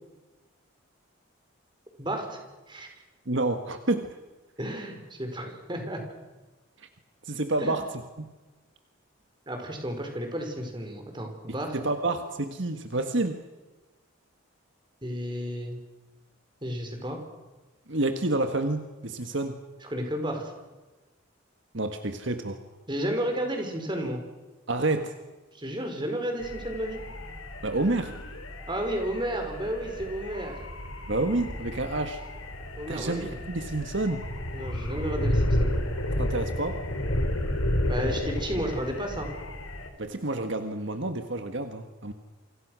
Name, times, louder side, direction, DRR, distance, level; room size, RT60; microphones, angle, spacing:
voice 1, 2.0-2.4 2.7-2.9 4.6-6.0 7.6-7.7 9.5-11.8 15.0-15.8 16.6-17.2 19.8-20.5 22.9-24.2 25.5-27.0 28.7-30.6 32.8-33.3 34.5-35.7 37.9-39.3, right 1 dB, 20° right, 4 dB, 4.6 m, -32 dB
voice 2, 3.2-4.1 6.8-6.9 7.2-7.9 8.2-8.3 11.7-13.4 17.9-19.6 21.7-22.6 24.7-25.2 27.6-28.1 31.1-32.2 32.9-34.2 36.2-36.8 40.0-42.1, right 2 dB, 60° right, 7 dB, 1.6 m, -29 dB
sound 1, 26.4-39.9, left 1 dB, 85° left, 4.1 m, -31 dB
28.0 x 26.0 x 6.3 m, 1.2 s
head